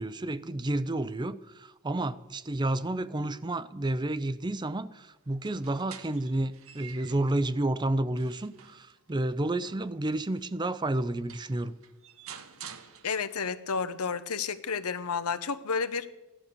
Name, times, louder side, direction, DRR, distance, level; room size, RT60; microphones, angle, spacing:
voice 1, 0.0-11.7, right 1 dB, 20° right, 0.5 m, -30 dB
sound 1, 5.3-7.4 7.9-10.5 11.0-11.1 11.3-13.5, right 8 dB, 70° right, 1.1 m, -49 dB
voice 2, 13.0-16.1, left 5 dB, 85° left, 0.9 m, -31 dB
15.5 x 12.0 x 6.9 m
head